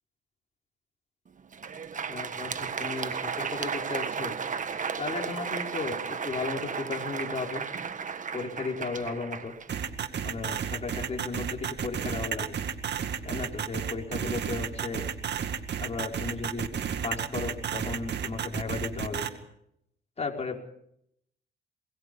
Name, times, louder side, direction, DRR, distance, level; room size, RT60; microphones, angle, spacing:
Crowd, 1.4-10.4, right 6 dB, 40° right, 1.6 m, -34 dB
voice 1, 2.1-4.4 5.0-7.6 8.3-9.5 10.2-12.6 13.2-15.1 15.8-16.7 17.0-19.3 20.2-20.6, left 4 dB, 35° left, 1 dB, 5.0 m, -35 dB
sound 1, 9.7-19.3, right 8 dB, 60° right, 2.2 m, -32 dB
22.5 x 21.5 x 5.6 m, 0.73 s
cardioid pair, 90°, 20 cm